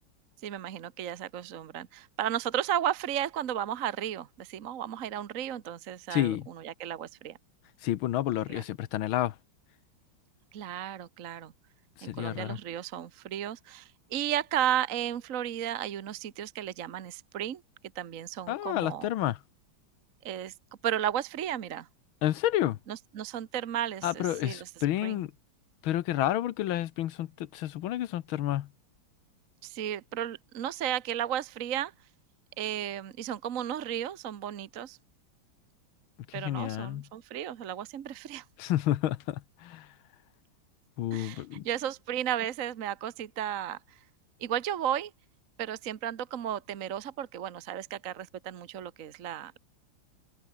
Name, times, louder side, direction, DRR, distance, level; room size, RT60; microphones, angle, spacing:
voice 1, 0.4-7.4 8.5-8.6 10.5-11.5 12.0-17.6 18.0-19.1 20.2-20.5 20.8-21.9 22.9-24.7 25.0-25.2 29.6-31.9 32.6-35.0 36.3-38.4 41.1-43.8 44.4-45.1 45.6-49.6, right 10 dB, 50° right, 1.1 m, -34 dB
voice 2, 6.1-6.5 7.8-9.3 12.0-12.6 18.5-19.4 22.2-22.8 24.0-25.3 25.8-28.7 36.3-37.1 38.6-39.9 41.0-41.7, left 13 dB, 80° left, 1.7 m, -30 dB
omnidirectional pair, 2.3 m